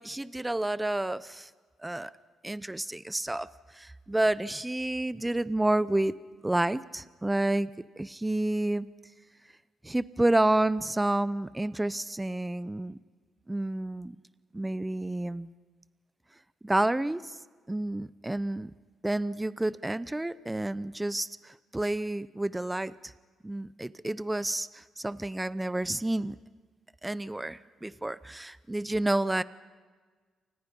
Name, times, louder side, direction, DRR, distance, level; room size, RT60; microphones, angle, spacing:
voice 1, 0.0-1.5 1.8-2.1 2.4-6.1 6.4-7.7 8.0-8.9 9.8-13.0 13.5-14.2 14.5-15.5 16.6-17.4 17.7-18.7 19.0-23.1 23.4-26.3 27.0-29.4, right 1 dB, 10° right, 17 dB, 0.8 m, -29 dB
29.0 x 25.0 x 5.5 m, 1.5 s
cardioid pair, 90°, 0 cm